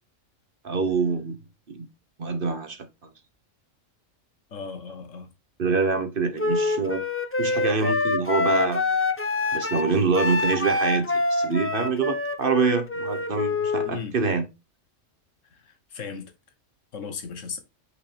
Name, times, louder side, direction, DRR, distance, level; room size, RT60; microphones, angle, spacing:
voice 1, 0.6-1.4 1.7-1.9 2.2-2.8 5.6-7.0 7.4-8.8 9.5-14.4, right 4 dB, 45° right, 1.1 m, -25 dB
voice 2, 4.5-5.3 13.8-14.2 15.4-16.3 16.9-17.6, left 5 dB, 75° left, 1.5 m, -36 dB
Wind instrument woodwind instrument, 6.4-13.9, left 3 dB, 20° left, 0.4 m, -25 dB
5.8 x 4.8 x 4.3 m
omnidirectional pair, 1.3 m